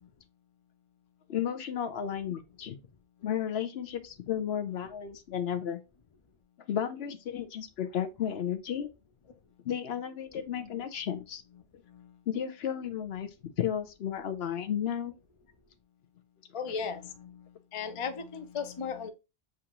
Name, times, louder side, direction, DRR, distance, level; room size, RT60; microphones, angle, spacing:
voice 1, 1.3-2.8 3.2-5.8 6.7-8.9 9.6-11.4 12.3-13.3 13.6-15.1, left 9 dB, 70° left, 0.9 m, -33 dB
voice 2, 16.5-19.1, left 6 dB, 40° left, 0.5 m, -37 dB
7.1 x 2.5 x 2.9 m
omnidirectional pair, 1.1 m